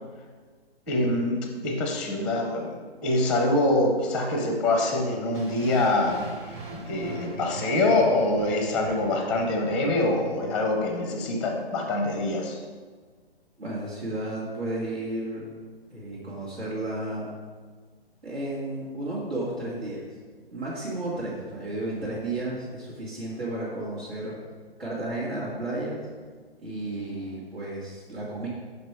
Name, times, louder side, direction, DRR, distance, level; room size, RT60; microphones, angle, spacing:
voice 1, 0.9-12.6, left 2 dB, 5° left, 2 dB, 0.5 m, -25 dB
sound 1, 5.3-11.3, right 4 dB, 25° right, 0.9 m, -41 dB
voice 2, 13.6-15.5 15.9-17.3 18.2-20.1 20.5-24.3 24.8-26.0 26.6-28.5, right 2 dB, 90° right, -10 dB, 2.2 m, -33 dB
5.9 x 5.3 x 4.6 m, 1.5 s
figure-of-eight pair, 135°, 31 cm